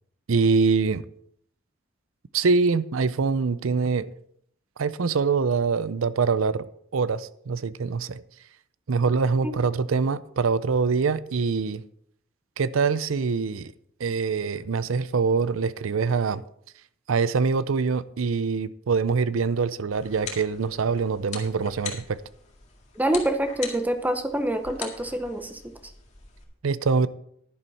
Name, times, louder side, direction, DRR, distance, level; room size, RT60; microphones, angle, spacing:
voice 1, 0.3-1.0 2.3-4.1 4.8-6.7 6.9-8.2 8.9-11.8 12.6-13.7 14.0-16.4 17.1-22.2 26.6-27.1, right 5 dB, 80° right, 0.5 m, -24 dB
sound 1, 19.9-26.4, left 6 dB, 35° left, 2.0 m, -41 dB
voice 2, 23.0-25.7, right 1 dB, 10° right, 0.8 m, -26 dB
11.0 x 11.0 x 4.2 m
head